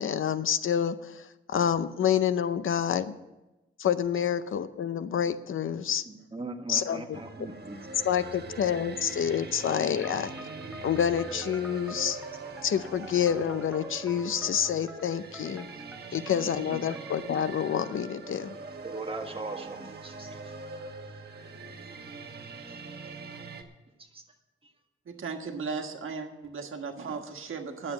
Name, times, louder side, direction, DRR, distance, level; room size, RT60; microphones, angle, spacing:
voice 1, 0.0-3.1 3.8-6.0 6.7-7.5 8.0-10.3 10.8-12.2 12.6-15.7 16.1-18.6, left 8 dB, 75° left, 13 dB, 0.6 m, -28 dB
voice 2, 6.1-7.8 16.7-16.8 18.8-20.5 24.0-24.2, right 2 dB, 25° right, 3 dB, 1.5 m, -39 dB
sound 1, 7.1-23.6, right 3 dB, 50° right, 1.3 m, -42 dB
sound 2, 10.0-17.4, right 2 dB, 5° right, 0.6 m, -48 dB
voice 3, 25.0-27.9, right 5 dB, 75° right, 4 dB, 1.5 m, -36 dB
10.5 x 7.5 x 9.0 m, 1.0 s
wide cardioid pair, 115°, 21 cm